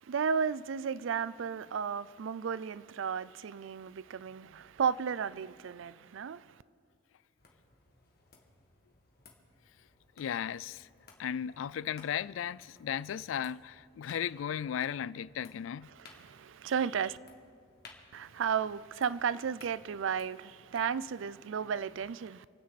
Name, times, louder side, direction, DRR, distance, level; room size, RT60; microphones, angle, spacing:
voice 1, 0.0-6.5 16.2-17.2 18.1-22.5, right 7 dB, 75° right, 0.4 m, -33 dB
sound 1, 7.4-21.1, left 3 dB, 50° left, 1.8 m, -60 dB
voice 2, 10.2-10.9 11.2-15.9, left 9 dB, 80° left, 0.3 m, -36 dB
28.0 x 9.5 x 4.1 m
head